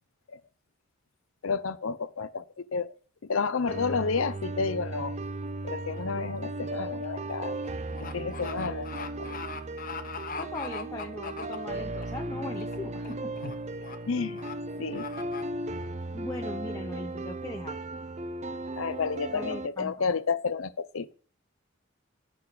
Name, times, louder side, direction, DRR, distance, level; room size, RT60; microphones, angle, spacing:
voice 1, 1.4-2.9 3.2-5.2 5.6-7.6 8.0-8.9 9.2-9.4 13.4-13.5 14.1-14.4 14.8-15.3 18.8-21.1, left 5 dB, 80° left, 0.7 m, -31 dB
sound 1, 3.7-19.7, right 2 dB, 35° right, 0.4 m, -36 dB
sound 2, 6.0-6.2 6.6-12.0 12.5-12.8 13.0-13.5 13.8-14.0 14.4-14.5 14.9-15.4, left 5 dB, 40° left, 1.0 m, -40 dB
voice 2, 10.4-13.3 16.1-17.8 19.3-20.1, left 2 dB, 15° left, 0.6 m, -39 dB
8.7 x 6.1 x 6.7 m
head